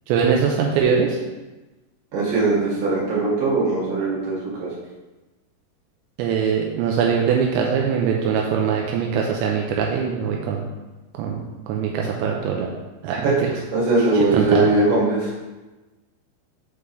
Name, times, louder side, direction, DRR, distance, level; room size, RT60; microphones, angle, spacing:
voice 1, 0.1-1.2 6.2-10.6 11.2-12.7 13.0-13.2 14.0-14.7, right 6 dB, 85° right, 0 dB, 2.6 m, -22 dB
voice 2, 2.1-4.7 13.1-13.4 13.7-15.3, right 3 dB, 55° right, -7 dB, 2.9 m, -20 dB
6.7 x 5.2 x 3.3 m, 1.1 s
omnidirectional pair, 5.6 m